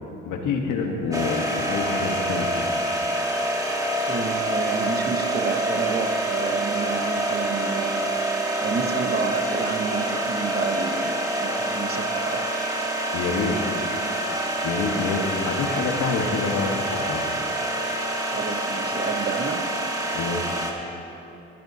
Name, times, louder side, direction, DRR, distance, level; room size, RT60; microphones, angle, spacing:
voice 1, 0.2-2.7 13.1-13.6 14.6-17.2 20.1-20.6, left 4 dB, 85° left, 2 dB, 1.4 m, -27 dB
sound 1, 1.1-20.7, right 1 dB, 10° right, 1.5 m, -26 dB
voice 2, 4.1-8.2 8.6-12.7 15.4-15.5 18.3-19.7, right 4 dB, 30° right, 7 dB, 0.9 m, -30 dB
22.0 x 9.2 x 2.8 m, 2.9 s
cardioid pair, 90°, 30 cm